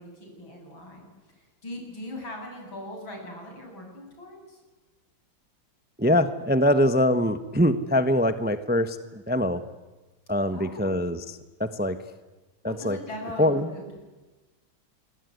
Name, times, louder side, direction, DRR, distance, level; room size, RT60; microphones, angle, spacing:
voice 1, 0.0-4.6 10.5-11.0 12.6-13.9, left 1 dB, 75° left, 1 dB, 8.7 m, -40 dB
voice 2, 6.0-9.6 10.3-11.2 11.6-12.0 12.6-13.0 13.4-13.7, equal, 5° right, 11 dB, 0.8 m, -23 dB
27.5 x 23.0 x 9.5 m, 1.2 s
omnidirectional pair, 2.2 m